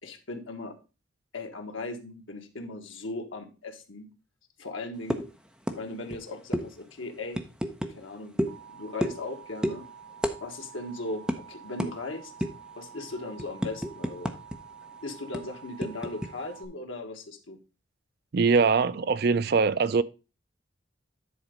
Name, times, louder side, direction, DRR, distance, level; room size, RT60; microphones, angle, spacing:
voice 1, 0.0-0.8 1.3-4.1 4.6-5.2 5.8-7.4 7.9-9.9 10.4-12.3 12.8-14.4 15.0-17.6, left 2 dB, 80° left, 1.4 m, -38 dB
sound 1, 5.1-5.3 5.7-5.8 6.1-6.2 6.5-6.7 7.3-7.9 8.4-8.6 9.0-9.3 9.6-9.8 10.2-10.4 10.7-10.8 11.3-11.4 11.8-11.9 12.4-12.7 13.1-14.6 14.8-14.9 15.3-16.3, equal, 5° right, 0.7 m, -30 dB
Alarm, 8.5-16.7, right 7 dB, 75° right, 2.2 m, -49 dB
voice 2, 18.3-20.0, right 4 dB, 50° right, 0.4 m, -22 dB
10.0 x 4.1 x 5.0 m
head